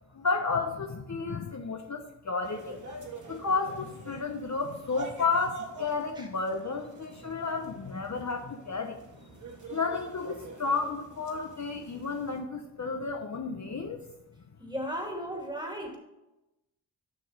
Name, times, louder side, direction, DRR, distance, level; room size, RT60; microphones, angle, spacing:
voice 1, 0.1-2.8 3.3-9.0 9.7-14.0, left 4 dB, 40° left, 4 dB, 0.8 m, -32 dB
sound 1, 2.4-12.4, right 3 dB, 45° right, 1.9 m, -46 dB
voice 2, 14.6-16.0, equal, 10° right, 1 dB, 2.1 m, -35 dB
7.2 x 6.2 x 4.8 m, 0.95 s
cardioid pair, 65°, 43 cm